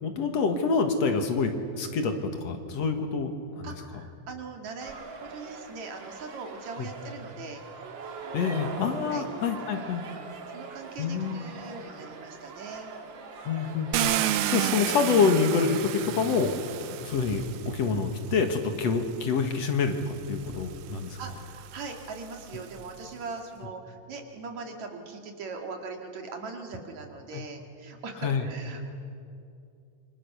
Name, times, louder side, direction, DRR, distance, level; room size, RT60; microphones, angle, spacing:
voice 1, 0.0-3.7 6.8-6.9 8.3-10.0 11.0-11.4 13.5-16.5 16.9-21.2 27.3-27.4 28.2-28.5, left 5 dB, 65° left, 6 dB, 2.7 m, -27 dB
voice 2, 3.6-7.6 9.0-9.3 10.5-12.9 21.2-28.9, right 4 dB, 70° right, 3 dB, 3.6 m, -40 dB
sound 1, 4.8-14.1, right 4 dB, 45° right, 2.0 m, -42 dB
Car, 13.9-18.0 19.0-19.1 19.6-22.9, right 12 dB, 90° right, 1.1 m, -32 dB
27.0 x 25.0 x 6.8 m, 2.5 s
omnidirectional pair, 3.3 m